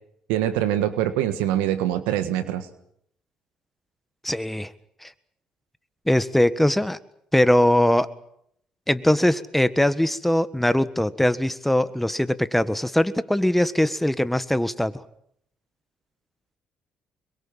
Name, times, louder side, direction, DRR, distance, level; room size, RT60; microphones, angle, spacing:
voice 1, 0.3-2.7, right 12 dB, 85° right, 11 dB, 1.5 m, -24 dB
voice 2, 4.2-4.7 5.0-5.1 6.1-7.0 7.3-8.1 8.9-14.9, left 1 dB, 5° left, 13 dB, 1.6 m, -21 dB
24.0 x 22.5 x 7.4 m, 0.72 s
hypercardioid pair, 55°, 3 cm